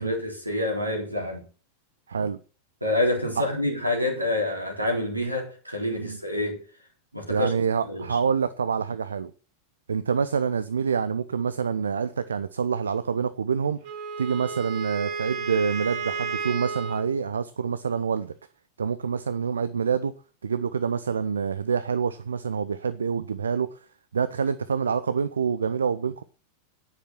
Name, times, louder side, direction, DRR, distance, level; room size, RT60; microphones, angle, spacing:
voice 1, 0.0-1.4 2.8-6.6 7.1-8.2, left 1 dB, 85° right, 3.7 m, -27 dB
voice 2, 2.1-2.4 3.4-3.5 6.0-6.2 7.3-9.3 9.9-13.8 14.2-18.3 18.8-20.1 20.4-23.8 24.1-26.2, right 6 dB, 70° right, 0.6 m, -26 dB
Wind instrument woodwind instrument, 13.8-17.1, right 5 dB, 45° right, 3.0 m, -32 dB
10.0 x 9.8 x 5.8 m
figure-of-eight pair, 90°, 0 cm